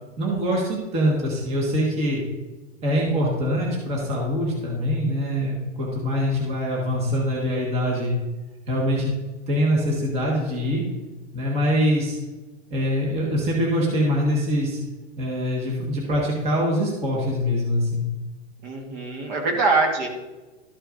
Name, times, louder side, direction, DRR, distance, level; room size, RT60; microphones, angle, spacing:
voice 1, 0.2-2.2 2.8-8.1 8.7-9.1 9.5-10.8 11.3-12.2 12.7-14.8 15.2-18.1, equal, 15° right, -3 dB, 1.5 m, -24 dB
voice 2, 18.6-20.1, right 3 dB, 35° right, 1 dB, 1.6 m, -23 dB
13.0 x 6.5 x 2.6 m, 1.2 s
hypercardioid pair, 160°, 38 cm